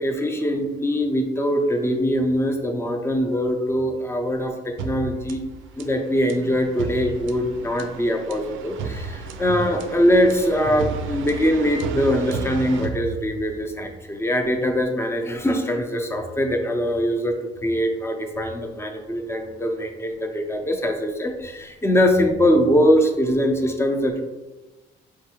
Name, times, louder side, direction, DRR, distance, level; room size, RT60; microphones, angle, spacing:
voice 1, 0.0-5.4 5.8-24.2, equal, 15° left, 4 dB, 0.6 m, -22 dB
sound 1, 4.8-13.7, right 4 dB, 75° right, 0.4 m, -33 dB
4.7 x 2.6 x 3.0 m, 1.1 s
cardioid pair, 90°, 20 cm